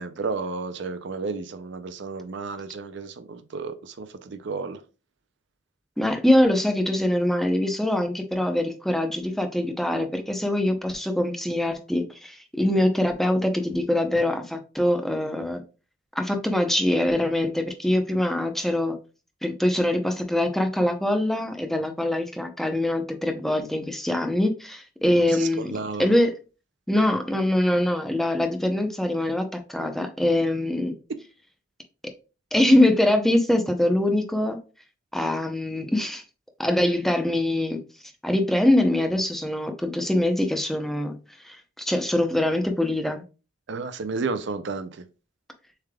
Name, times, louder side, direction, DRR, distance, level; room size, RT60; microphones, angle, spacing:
voice 1, 0.0-4.8 25.3-26.1 43.7-45.0, right 4 dB, 60° right, 0.5 m, -32 dB
voice 2, 6.0-15.6 16.2-19.0 19.4-25.7 26.0-26.3 26.9-30.9 32.5-34.6 35.1-36.2 36.6-37.8 38.2-41.1 41.4-43.2, left 1 dB, ahead, 0.6 m, -23 dB
7.0 x 3.3 x 2.3 m
head